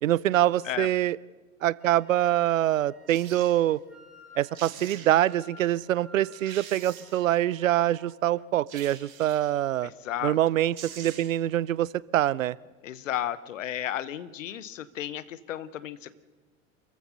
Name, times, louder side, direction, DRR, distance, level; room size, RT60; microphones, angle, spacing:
voice 1, 0.0-1.2 1.6-3.8 4.4-9.9 10.2-12.6, right 13 dB, 75° right, 23 dB, 0.6 m, -25 dB
Wind instrument woodwind instrument, 1.8-8.2, equal, ahead, 3.4 m, -55 dB
sound 1, 3.1-3.5 4.3-4.4 4.5-5.4 5.9-6.0 6.3-7.4 8.7-9.6 10.4-10.5 10.7-11.5 11.8-11.9, right 9 dB, 50° right, 3.9 m, -45 dB
voice 2, 9.8-10.4 12.8-16.1, left 11 dB, 70° left, 16 dB, 1.0 m, -33 dB
27.5 x 15.0 x 6.8 m, 1.3 s
figure-of-eight pair, 75°, 40 cm